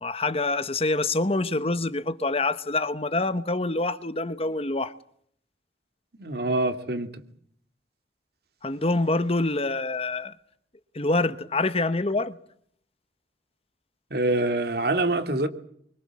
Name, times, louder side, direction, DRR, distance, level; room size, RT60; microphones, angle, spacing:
voice 1, 0.0-4.9 8.6-10.3 10.9-12.3, left 2 dB, 35° left, 1.1 m, -26 dB
voice 2, 6.2-7.1 14.1-15.5, right 2 dB, 60° right, 2.6 m, -25 dB
27.0 x 24.5 x 7.6 m
head